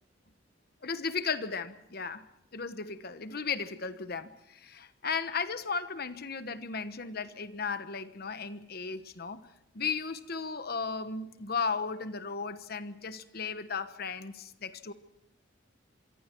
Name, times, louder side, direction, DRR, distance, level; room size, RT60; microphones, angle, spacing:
voice 1, 0.8-2.2 2.5-9.4 9.7-14.9, left 5 dB, 50° left, 11 dB, 1.2 m, -35 dB
26.5 x 24.0 x 4.6 m, 0.82 s
head